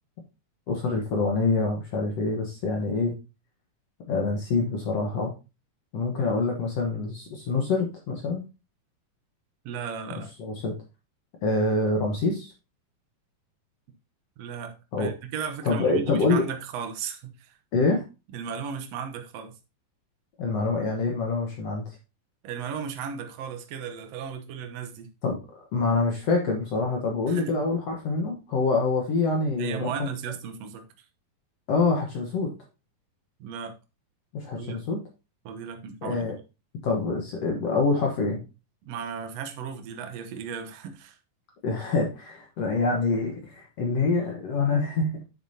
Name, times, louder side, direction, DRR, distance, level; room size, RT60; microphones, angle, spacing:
voice 1, 0.7-3.1 4.1-5.3 5.9-8.4 10.4-10.8 11.4-12.5 14.9-15.1 15.7-16.4 17.7-18.0 20.4-21.8 25.2-25.4 25.7-30.1 31.7-32.5 34.3-35.0 36.0-36.4 36.8-38.4 41.6-45.2, left 3 dB, 60° left, 1.8 m, -26 dB
voice 2, 9.6-10.3 14.4-17.6 18.3-19.5 22.4-25.1 27.3-27.5 29.6-30.8 33.4-33.7 34.6-34.8 35.4-36.2 38.8-41.2, right 7 dB, 70° right, 1.6 m, -35 dB
8.8 x 6.8 x 2.8 m
omnidirectional pair, 4.2 m